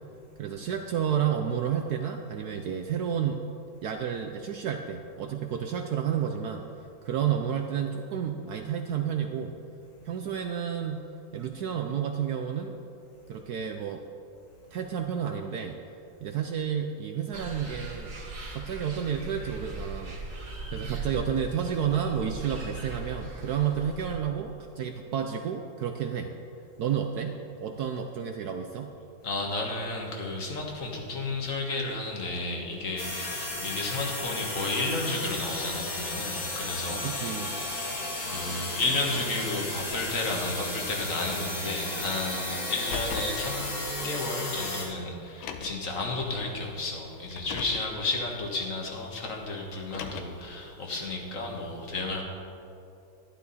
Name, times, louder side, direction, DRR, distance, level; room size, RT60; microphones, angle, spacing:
voice 1, 0.4-3.4 3.8-6.7 7.0-9.5 10.0-11.0 11.3-12.8 13.3-14.0 14.7-15.8 16.2-18.1 18.5-20.1 20.7-26.3 26.8-28.9 36.9-37.6, right 8 dB, 70° right, 4 dB, 0.9 m, -31 dB
sound 1, 17.3-24.2, right 3 dB, 40° right, 1.9 m, -39 dB
voice 2, 29.2-52.2, left 2 dB, 45° left, 0 dB, 1.6 m, -32 dB
sound 2, 33.0-44.8, left 2 dB, 60° left, 2.7 m, -34 dB
Car, 42.7-43.4 44.5-44.6 45.3-45.9 47.2-47.9 49.7-50.5, left 6 dB, 85° left, 1.5 m, -38 dB
11.5 x 11.5 x 4.1 m, 2.8 s
omnidirectional pair, 2.2 m